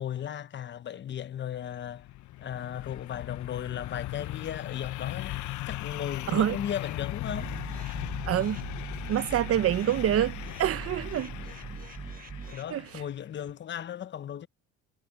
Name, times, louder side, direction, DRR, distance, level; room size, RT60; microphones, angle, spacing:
voice 1, 0.0-2.1 2.4-7.5 12.5-14.5, left 9 dB, 35° left, 0.7 m, -36 dB
sound 1, 1.5-13.2, left 16 dB, 65° left, 0.9 m, -38 dB
voice 2, 6.3-6.6 8.3-8.6 9.1-11.3 12.7-13.0, right 11 dB, 45° right, 0.8 m, -26 dB
sound 2, 7.3-12.6, right 5 dB, 25° right, 1.5 m, -41 dB
cardioid pair, 100°, 33 cm